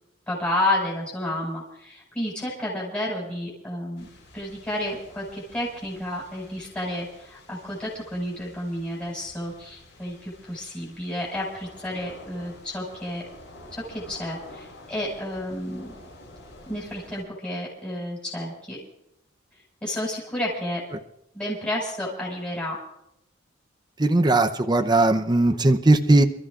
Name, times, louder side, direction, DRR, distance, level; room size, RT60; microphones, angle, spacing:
voice 1, 0.3-4.0 4.3-13.2 13.7-15.9 16.6-18.8 19.8-20.8 21.3-22.8, left 1 dB, 10° left, -6 dB, 5.0 m, -31 dB
sound 1, 4.0-17.2, left 1 dB, 65° left, 5.3 m, -49 dB
voice 2, 24.0-26.2, right 2 dB, 20° right, 7 dB, 0.7 m, -18 dB
29.0 x 13.5 x 2.5 m, 0.79 s
head